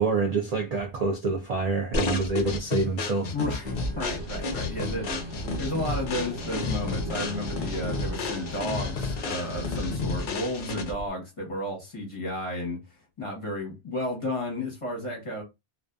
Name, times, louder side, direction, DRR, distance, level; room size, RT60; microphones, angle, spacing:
voice 1, 0.0-3.3, right 3 dB, 55° right, 0.4 m, -26 dB
sound 1, 1.9-11.1, left 3 dB, 55° left, 0.7 m, -32 dB
voice 2, 3.3-12.8 13.2-15.4, left 1 dB, 30° left, 0.9 m, -33 dB
sound 2, 3.6-10.0, right 1 dB, 80° right, 1.0 m, -38 dB
2.5 x 2.3 x 2.2 m
omnidirectional pair, 1.1 m